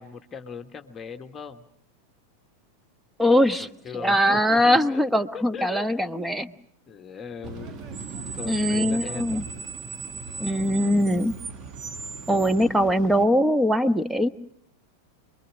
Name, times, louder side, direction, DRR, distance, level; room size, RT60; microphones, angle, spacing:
voice 1, 0.0-1.6 3.6-6.6 6.9-7.9 8.4-9.4, left 6 dB, 20° left, 5 dB, 1.3 m, -39 dB
voice 2, 3.2-3.7 4.0-6.5 8.4-9.4 10.4-11.3 12.3-14.3, equal, 5° right, 12 dB, 1.1 m, -21 dB
Screech, 7.4-13.2, right 5 dB, 35° right, 1.7 m, -36 dB
28.0 x 22.5 x 6.2 m, 0.69 s
figure-of-eight pair, 90°, 0 cm